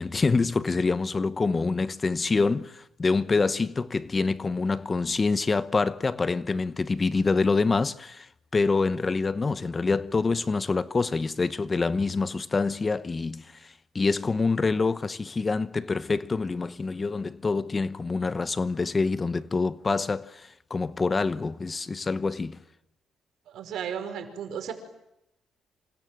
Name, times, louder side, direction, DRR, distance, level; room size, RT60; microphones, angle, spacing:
voice 1, 0.0-8.3 8.5-22.6, left 4 dB, 30° left, 1.0 m, -26 dB
voice 2, 23.5-24.7, right 8 dB, 75° right, 5.1 m, -34 dB
28.0 x 27.0 x 7.7 m
cardioid pair, 95°, 0 cm